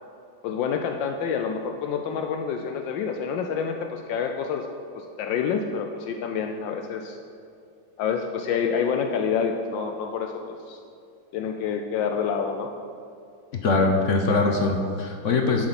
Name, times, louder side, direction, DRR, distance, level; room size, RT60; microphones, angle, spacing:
voice 1, 0.4-4.7 4.9-7.2 8.0-10.8 11.3-12.7, left 6 dB, 80° left, 4 dB, 1.3 m, -28 dB
voice 2, 13.6-15.7, left 3 dB, 60° left, 3 dB, 0.8 m, -22 dB
11.0 x 7.8 x 4.1 m, 2.5 s
omnidirectional pair, 2.1 m